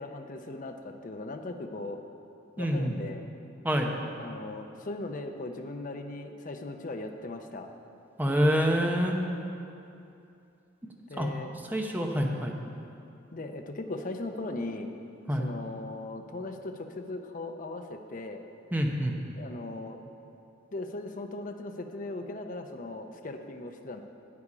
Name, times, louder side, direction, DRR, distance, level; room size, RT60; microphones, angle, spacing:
voice 1, 0.0-2.0 2.6-3.2 4.2-7.7 11.1-11.5 13.3-14.9 15.4-18.4 19.3-20.0 20.7-24.0, left 2 dB, 40° left, 5 dB, 0.6 m, -38 dB
voice 2, 2.6-3.0 3.6-3.9 8.2-9.2 11.2-11.3 11.7-12.5 15.3-15.5 18.7-19.2, equal, 10° right, 1 dB, 0.7 m, -26 dB
8.6 x 8.4 x 4.9 m, 2.6 s
head